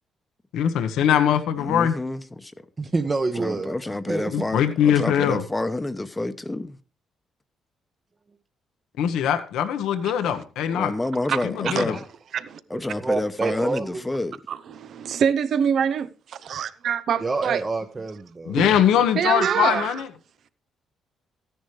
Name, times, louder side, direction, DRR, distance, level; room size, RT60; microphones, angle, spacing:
voice 1, 0.5-1.9 4.3-5.4 9.0-10.9 11.4-12.0 18.5-20.1, left 9 dB, 85° left, 1.1 m, -22 dB
voice 2, 1.6-2.7 3.4-6.8 10.7-12.0 12.7-14.4, left 2 dB, 15° left, 0.9 m, -29 dB
voice 3, 2.8-3.7 4.1-4.5 12.7-14.0 17.2-18.6, right 3 dB, 30° right, 1.0 m, -27 dB
voice 4, 14.5-17.6 18.6-18.7 19.1-20.0, right 7 dB, 65° right, 0.8 m, -25 dB
14.0 x 10.0 x 3.3 m
cardioid pair, 90°, 0 cm